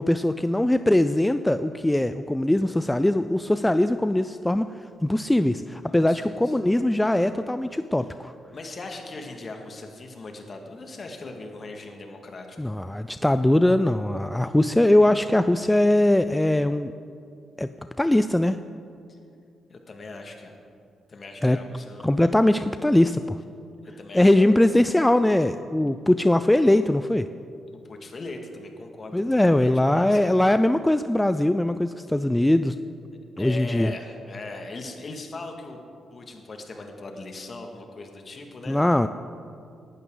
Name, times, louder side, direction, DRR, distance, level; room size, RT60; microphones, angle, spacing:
voice 1, 0.0-4.7 5.0-8.3 12.6-16.9 17.6-17.7 18.0-18.6 21.4-21.6 22.0-23.4 24.1-27.3 29.1-32.8 33.4-33.9 38.7-39.1, left 1 dB, 10° left, 11 dB, 0.4 m, -21 dB
voice 2, 5.9-6.6 8.5-12.7 19.1-19.2 19.7-20.6 21.1-22.4 23.8-24.5 27.7-30.5 33.4-35.8 36.1-38.8, left 2 dB, 45° left, 3 dB, 2.1 m, -39 dB
18.5 x 12.0 x 4.0 m, 2.5 s
supercardioid pair, 50°, 0 cm